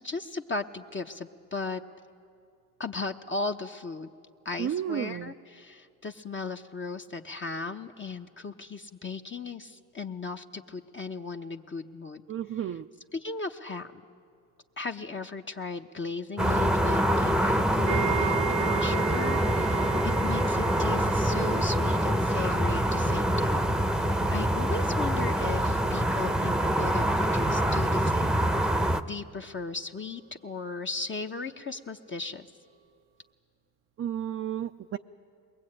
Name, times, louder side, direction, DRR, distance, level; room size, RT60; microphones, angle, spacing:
voice 1, 0.0-1.8 2.8-4.1 4.4-12.2 12.6-12.8 13.1-14.0 14.8-19.9 20.2-23.7 23.9-28.3 29.1-32.5, left 4 dB, 30° left, 4 dB, 0.9 m, -36 dB
voice 2, 4.6-5.3 12.3-12.8 34.0-35.0, right 10 dB, 35° right, 6 dB, 0.5 m, -32 dB
sound 1, 16.4-29.0, right 1 dB, ahead, 0.8 m, -25 dB
sound 2, 17.9-27.0 27.2-27.5 28.0-28.1, right 13 dB, 80° right, 0.8 m, -37 dB
22.0 x 20.0 x 8.8 m, 2.4 s
supercardioid pair, 65°, 41 cm